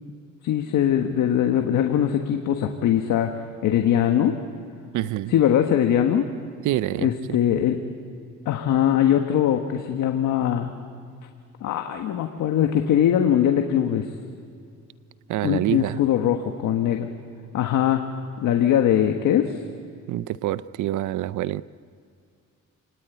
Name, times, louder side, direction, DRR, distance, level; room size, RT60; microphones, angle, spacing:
voice 1, 0.4-3.3 3.6-4.4 5.3-6.3 7.0-7.8 8.4-10.7 11.6-14.1 15.4-17.1 17.5-18.0 18.4-19.6, left 10 dB, 80° left, 4 dB, 1.5 m, -21 dB
voice 2, 4.9-5.3 6.6-7.4 15.3-16.0 20.1-21.6, right 14 dB, 75° right, 17 dB, 0.6 m, -26 dB
28.5 x 18.5 x 9.2 m, 2.4 s
cardioid pair, 90°, 30 cm